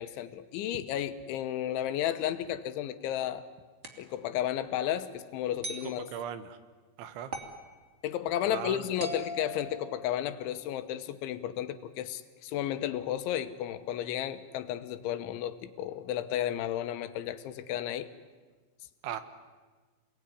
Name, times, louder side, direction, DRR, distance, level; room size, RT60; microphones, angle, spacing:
voice 1, 0.0-3.4 4.0-6.1 8.0-18.1, left 11 dB, 85° left, 10 dB, 3.5 m, -33 dB
sound 1, 3.8-4.1 5.6-5.9 7.3-7.6 9.0-10.4, right 1 dB, 30° right, 1.4 m, -40 dB
voice 2, 6.1-6.6 7.0-7.3 8.4-8.9 19.0-19.2, right 9 dB, 85° right, 11 dB, 3.7 m, -37 dB
28.0 x 19.5 x 9.9 m, 1.4 s
omnidirectional pair, 5.3 m